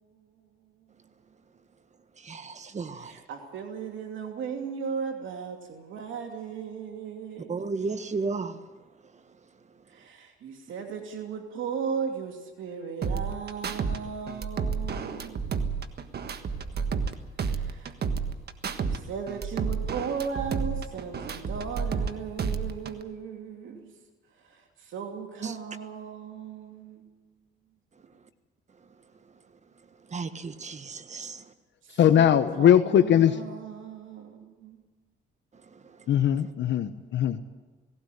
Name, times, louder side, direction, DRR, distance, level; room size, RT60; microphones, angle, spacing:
voice 1, 2.3-3.0 7.5-8.5 25.4-25.5 30.1-31.3, right 4 dB, 35° right, 1.5 m, -33 dB
voice 2, 2.9-7.6 9.9-15.4 17.4-18.0 18.8-23.9 24.4-27.0 31.8-34.8, right 6 dB, 75° right, 2.7 m, -36 dB
sound 1, 13.0-14.0 14.3-17.1 17.4-19.0 19.3-22.1 22.4-23.0, right 5 dB, 55° right, 1.5 m, -30 dB
voice 3, 32.0-33.4 36.1-37.4, left 10 dB, 65° left, 0.9 m, -20 dB
18.0 x 17.0 x 9.2 m
cardioid pair, 90°, 20 cm